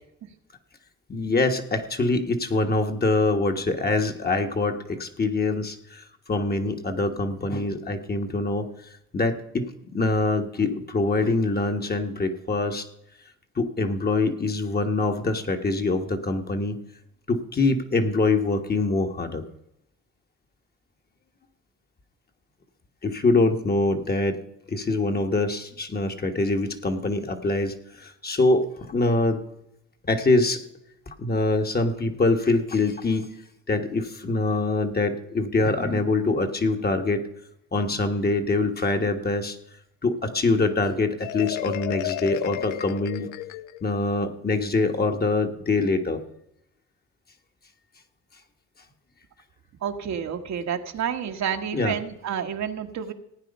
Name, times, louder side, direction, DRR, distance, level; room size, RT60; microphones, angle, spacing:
voice 1, 1.1-8.7 9.1-12.9 13.5-16.8 17.3-19.5 23.0-24.4 24.7-29.4 30.0-30.6 31.1-33.3 33.7-37.2 37.7-39.6 40.0-43.3 43.8-46.2 51.7-52.0, left 2 dB, 30° left, 5 dB, 1.6 m, -24 dB
Marimba xylophone, 41.2-44.0, left 16 dB, 85° left, 0.5 m, -32 dB
voice 2, 49.8-53.1, right 8 dB, 65° right, 5 dB, 1.4 m, -29 dB
16.5 x 9.3 x 5.5 m, 0.84 s
cardioid pair, 90°, 30 cm